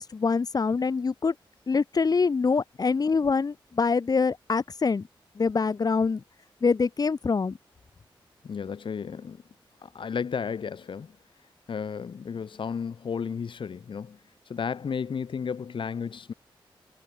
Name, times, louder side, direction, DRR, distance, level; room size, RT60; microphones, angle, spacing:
voice 1, 0.0-1.3 1.7-5.0 5.4-6.2 6.6-7.6, left 4 dB, 45° left, 5.2 m, -25 dB
voice 2, 8.4-9.4 9.8-11.1 11.7-14.2 14.5-16.3, left 6 dB, 70° left, 4.8 m, -33 dB
wide cardioid pair, 130°, 9 cm